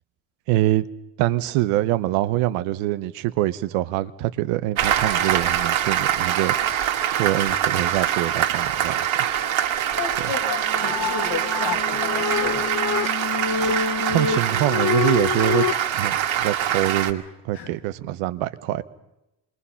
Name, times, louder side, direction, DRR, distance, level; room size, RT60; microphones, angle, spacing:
voice 1, 0.5-0.8 1.2-6.5 7.1-9.0 10.2-10.3 14.1-15.7 15.9-18.8, right 15 dB, 85° right, 1.0 m, -24 dB
Applause, 4.8-17.1, right 10 dB, 65° right, 2.1 m, -24 dB
voice 2, 10.0-12.8 17.5-17.7, left 6 dB, 75° left, 6.1 m, -32 dB
sound 1, 10.4-15.7, left 7 dB, 40° left, 0.9 m, -26 dB
27.0 x 22.0 x 5.7 m
supercardioid pair, 55°, 49 cm